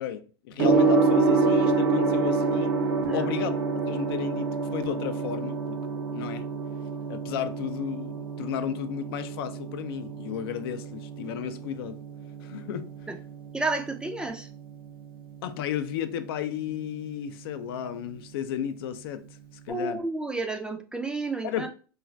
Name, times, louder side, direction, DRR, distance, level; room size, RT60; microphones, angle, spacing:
voice 1, 0.0-2.7 3.1-5.8 6.1-6.5 7.1-12.0 12.4-13.1 15.4-19.4 19.7-20.0 21.4-21.7, left 10 dB, 75° left, 0.4 m, -34 dB
Gong, 0.6-19.6, right 4 dB, 80° right, 0.6 m, -29 dB
voice 2, 3.0-3.3 13.1-13.2 13.5-14.5 19.7-21.7, right 2 dB, 5° right, 0.3 m, -31 dB
2.4 x 2.3 x 3.1 m
supercardioid pair, 115°, 13 cm